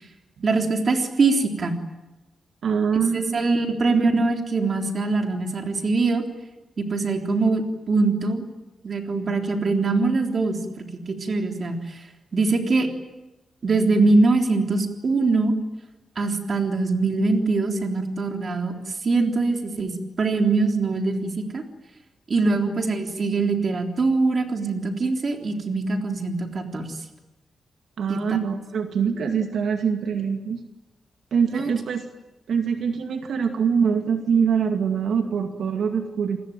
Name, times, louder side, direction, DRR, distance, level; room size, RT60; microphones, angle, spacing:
voice 1, 0.4-1.8 3.1-6.2 6.8-8.5 8.8-12.0 12.3-12.9 13.6-15.5 16.2-18.7 19.0-21.6 22.3-27.0 28.1-28.2 31.5-31.7, right 3 dB, 40° right, 4 dB, 3.5 m, -23 dB
voice 2, 2.6-3.6 28.0-30.6 31.3-32.0 32.5-36.4, right 6 dB, 75° right, 5 dB, 2.3 m, -24 dB
28.5 x 20.5 x 9.3 m, 1.1 s
wide cardioid pair, 155°, 0 cm